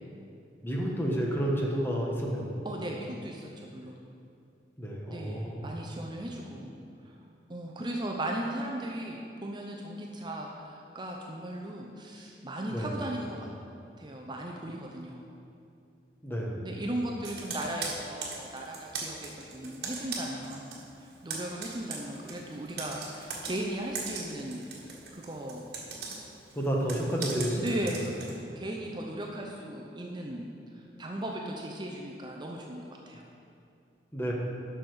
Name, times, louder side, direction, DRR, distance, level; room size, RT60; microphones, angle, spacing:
voice 1, 0.6-2.6 4.8-5.7 12.7-12.9 16.2-16.7 26.5-27.7 34.1-34.3, equal, 15° left, -2 dB, 1.3 m, -30 dB
voice 2, 2.6-4.0 5.1-6.7 7.0-7.2 7.5-13.5 14.0-15.2 16.6-25.6 27.5-30.5 30.7-33.3, right 1 dB, 25° right, 0 dB, 0.7 m, -37 dB
Computer keyboard, 17.2-20.8 21.1-28.4, right 4 dB, 60° right, 1.5 m, -39 dB
11.0 x 6.3 x 4.9 m, 2.6 s
head